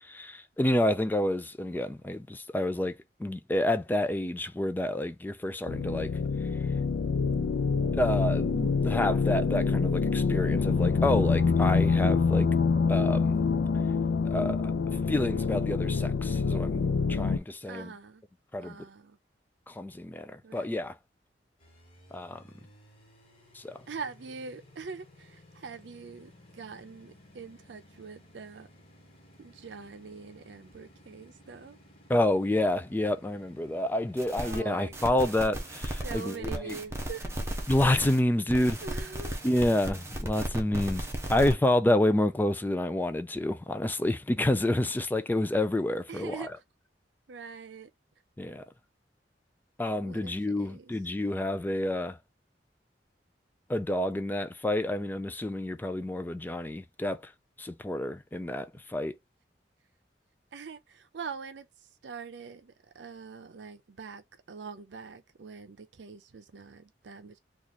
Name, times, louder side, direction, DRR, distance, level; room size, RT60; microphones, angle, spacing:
voice 1, 0.0-2.9 3.2-6.2 7.9-12.5 12.9-13.4 14.3-14.6 15.1-16.8 17.1-17.9 18.5-18.8 19.7-20.9 22.1-22.4 23.5-23.8 32.1-36.8 37.7-38.8 39.4-46.5 48.4-48.6 49.8-52.2 53.7-57.3 57.6-59.1, left 1 dB, 10° left, 0.3 m, -29 dB
sound 1, 5.7-17.4, left 5 dB, 85° left, 0.4 m, -26 dB
voice 2, 17.6-18.2 18.6-19.2 20.4-20.8 23.9-28.7 29.4-31.8 34.4-35.3 36.0-37.3 38.8-39.4 46.1-46.5 47.3-47.9 50.0-50.9 60.5-61.7 62.0-67.4, right 5 dB, 80° right, 0.5 m, -43 dB
sound 2, 21.6-41.3, left 1 dB, 35° left, 1.4 m, -56 dB
sound 3, 34.2-34.6 34.9-38.2 38.5-41.5, right 1 dB, 15° right, 0.8 m, -35 dB
3.0 x 2.4 x 3.9 m
head